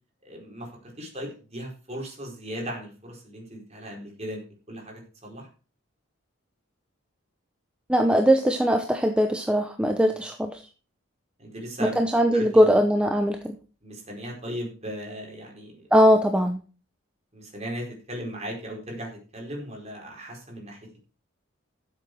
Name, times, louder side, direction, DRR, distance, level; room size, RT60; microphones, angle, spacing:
voice 1, 0.2-4.4 4.7-5.5 10.1-10.2 11.4-12.0 12.3-12.7 13.8-15.8 17.3-20.8, equal, 30° right, 0 dB, 4.6 m, -37 dB
voice 2, 7.9-10.6 11.8-13.6 15.9-16.6, equal, 5° right, 5 dB, 0.7 m, -20 dB
13.0 x 7.6 x 4.6 m, 0.37 s
head